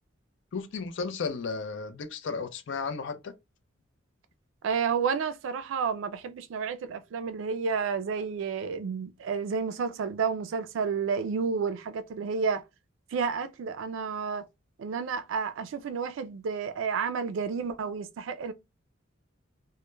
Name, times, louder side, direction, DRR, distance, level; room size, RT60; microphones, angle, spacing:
voice 1, 0.5-3.3, left 4 dB, 65° left, 0.4 m, -34 dB
voice 2, 4.6-12.6 13.1-14.5 14.8-18.5, right 5 dB, 75° right, 0.3 m, -31 dB
2.1 x 2.1 x 3.0 m
head